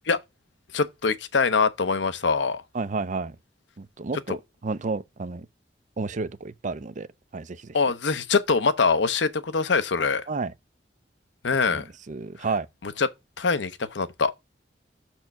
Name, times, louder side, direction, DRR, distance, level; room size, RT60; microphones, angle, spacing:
voice 1, 0.7-2.6 4.3-4.4 7.7-10.3 11.4-11.9 12.8-13.1 13.4-14.3, left 4 dB, 80° left, 0.8 m, -23 dB
voice 2, 2.7-3.4 3.8-5.5 6.0-7.1 7.3-7.8 10.3-10.5 11.7-12.7, right 4 dB, 45° right, 0.5 m, -31 dB
6.5 x 4.4 x 5.8 m
head